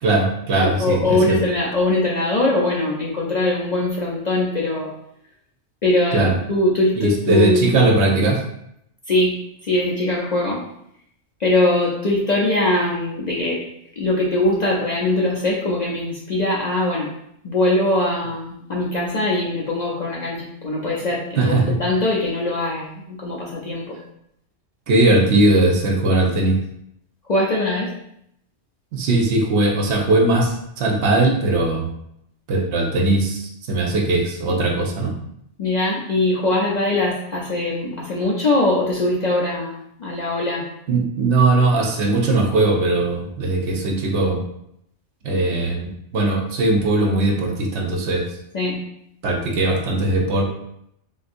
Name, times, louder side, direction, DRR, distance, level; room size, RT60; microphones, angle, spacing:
voice 1, 0.0-1.4 6.1-6.3 7.0-8.4 21.4-21.7 24.9-26.6 28.9-31.9 32.5-35.2 40.9-44.4 45.2-48.3 49.2-50.4, right 2 dB, 70° right, 1 dB, 0.9 m, -19 dB
voice 2, 0.5-4.9 5.8-7.7 9.1-9.3 9.6-10.6 11.4-13.6 14.0-17.1 17.4-24.0 27.3-27.9 35.6-40.6 48.5-48.8, left 2 dB, 50° left, -4 dB, 0.5 m, -21 dB
3.6 x 2.6 x 2.5 m, 0.74 s
omnidirectional pair, 1.2 m